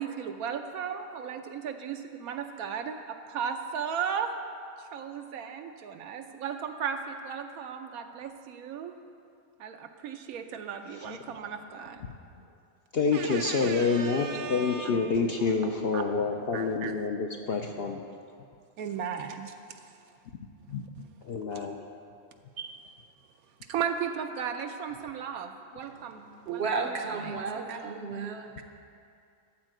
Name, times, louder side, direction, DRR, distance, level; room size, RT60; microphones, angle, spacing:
voice 1, 0.0-4.3 4.8-8.9 9.6-12.1 13.1-15.0 15.5-16.1 16.5-16.9 18.8-19.6 21.5-21.7 22.6-22.8 23.7-26.2 26.5-26.6 27.2-27.8, right 7 dB, 80° right, 6 dB, 1.1 m, -36 dB
voice 2, 12.9-18.0 20.7-20.8 21.2-21.9, left 4 dB, 60° left, 2 dB, 0.6 m, -28 dB
voice 3, 25.8-28.6, right 4 dB, 55° right, 5 dB, 0.8 m, -34 dB
13.0 x 4.5 x 7.6 m, 2.4 s
omnidirectional pair, 1.5 m